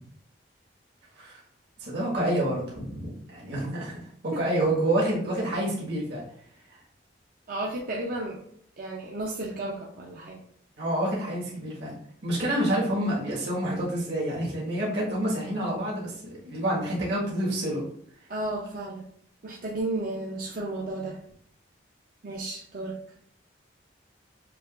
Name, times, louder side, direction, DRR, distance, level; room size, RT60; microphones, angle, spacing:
voice 1, 1.8-6.2 6.7-6.8 10.8-12.0 12.2-17.9, right 1 dB, 65° right, -5 dB, 1.6 m, -28 dB
voice 2, 7.5-8.4 8.8-10.4 18.3-19.1 19.4-21.2 22.2-23.0, right 2 dB, 50° right, -3 dB, 0.6 m, -33 dB
6.8 x 2.9 x 2.5 m, 0.65 s
head